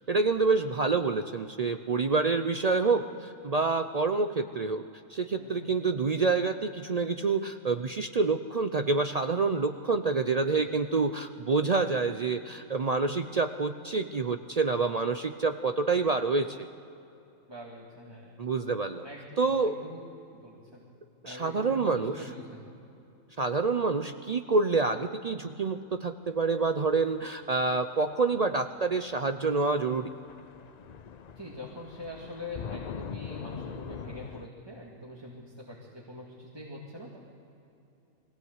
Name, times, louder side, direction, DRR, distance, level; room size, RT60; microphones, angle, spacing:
voice 1, 0.1-16.7 18.4-19.0 19.4-19.8 21.2-22.2 23.4-30.1, right 4 dB, 65° right, 8 dB, 0.4 m, -27 dB
voice 2, 5.4-5.7 10.3-10.6 17.5-18.4 19.0-20.0 20.3-20.9 21.2-22.7 31.4-37.2, left 1 dB, 15° right, -4 dB, 2.2 m, -44 dB
sound 1, 28.3-28.4 29.6-29.7 29.9-34.5, left 7 dB, 90° left, 0.3 m, -42 dB
22.0 x 16.5 x 8.0 m, 2.8 s
omnidirectional pair, 1.5 m